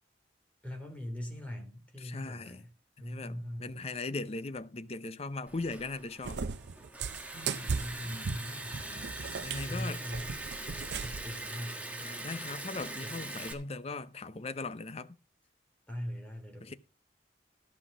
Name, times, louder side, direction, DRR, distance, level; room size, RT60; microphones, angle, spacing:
voice 1, 0.6-2.7 3.0-3.7 7.3-9.1 9.6-10.4 11.0-12.1 13.0-13.2 15.9-16.8, equal, 10° left, 3.3 m, -41 dB
voice 2, 2.0-2.6 3.0-6.4 8.0-8.4 9.4-10.0 12.0-15.2 16.6-16.7, left 3 dB, 35° left, 0.7 m, -39 dB
Liquid, 5.5-13.5, right 2 dB, 10° right, 1.4 m, -42 dB
Cat, 6.2-11.3, right 5 dB, 75° right, 0.6 m, -37 dB
14.0 x 5.8 x 6.1 m
head